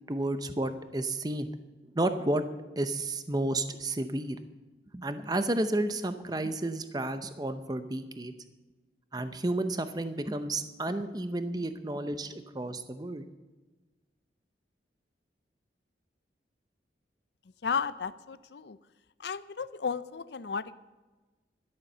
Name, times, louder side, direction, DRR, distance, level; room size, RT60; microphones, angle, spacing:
voice 1, 0.1-1.5 1.9-2.4 2.8-4.4 4.9-8.3 9.1-13.2, right 1 dB, 20° right, 10 dB, 0.7 m, -31 dB
voice 2, 17.6-18.8 19.2-20.8, left 6 dB, 70° left, 15 dB, 0.6 m, -34 dB
12.0 x 11.5 x 6.8 m, 1.2 s
head